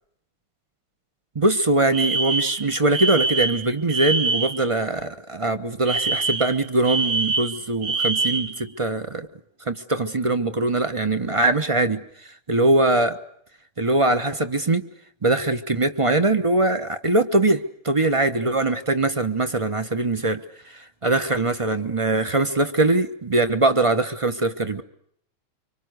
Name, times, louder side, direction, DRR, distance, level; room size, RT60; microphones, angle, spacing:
voice 1, 1.3-9.3 9.7-13.2 13.8-14.8 15.2-24.8, right 2 dB, 30° right, 10 dB, 0.6 m, -22 dB
Alarm, 1.9-4.7 5.9-8.6, right 3 dB, 65° right, 2.8 m, -25 dB
25.5 x 25.0 x 6.5 m, 0.70 s
omnidirectional pair, 2.2 m